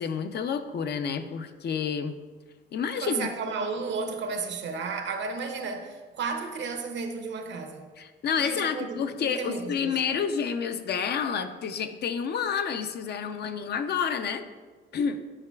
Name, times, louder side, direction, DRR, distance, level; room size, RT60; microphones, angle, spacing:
voice 1, 0.0-2.1 2.7-3.3 8.0-14.4 14.9-15.2, left 7 dB, 55° left, 0.5 m, -29 dB
voice 2, 3.0-7.9 8.4-10.2, right 4 dB, 65° right, 0.8 m, -33 dB
9.7 x 4.8 x 2.3 m
cardioid pair, 90°, 20 cm